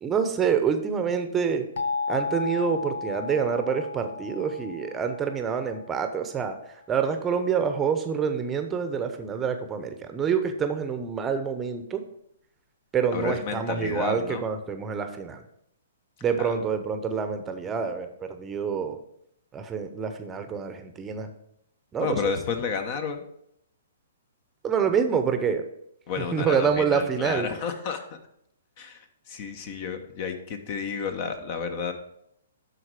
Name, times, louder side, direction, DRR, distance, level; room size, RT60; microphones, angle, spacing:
voice 1, 0.0-1.7 2.1-12.0 12.9-15.4 16.2-19.0 19.5-21.3 21.9-22.3 24.6-25.6 26.3-27.5, right 6 dB, 20° right, 7 dB, 0.8 m, -27 dB
sound 1, 1.8-6.5, left 4 dB, 65° left, 0.8 m, -34 dB
voice 2, 13.1-14.4 16.4-16.5 22.0-23.2 26.1-28.2 28.8-31.9, left 6 dB, 45° left, 8 dB, 1.1 m, -31 dB
12.0 x 4.1 x 4.9 m, 0.74 s
hypercardioid pair, 125°, 0 cm